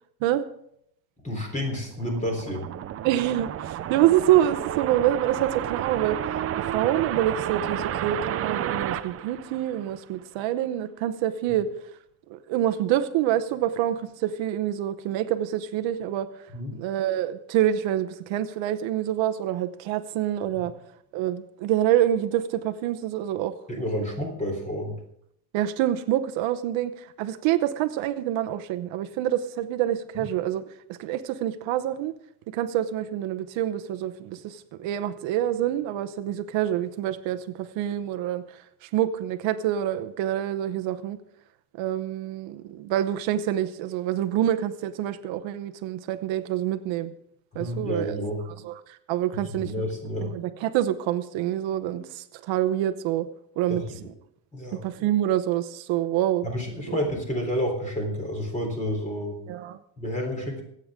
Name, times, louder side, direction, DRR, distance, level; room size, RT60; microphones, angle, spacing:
voice 1, 1.2-2.7 16.5-16.7 20.6-20.7 23.7-25.0 30.2-30.3 47.5-48.4 49.5-50.3 53.7-54.1 54.5-54.8 56.4-59.4 60.0-60.6, equal, 15° left, 2 dB, 3.6 m, -30 dB
sound 1, 1.8-10.1, right 11 dB, 30° right, 0.4 m, -31 dB
voice 2, 3.0-11.7 12.3-16.5 16.7-20.7 21.1-23.5 25.5-30.6 30.9-32.1 32.5-41.2 41.8-47.1 47.5-48.2 48.6-49.7 50.2-53.3 53.6-53.8 54.7-56.5 56.9-57.0 59.5-59.8, right 12 dB, 70° right, 9 dB, 1.0 m, -26 dB
24.0 x 8.9 x 3.7 m, 0.73 s
cardioid pair, 170°, 47 cm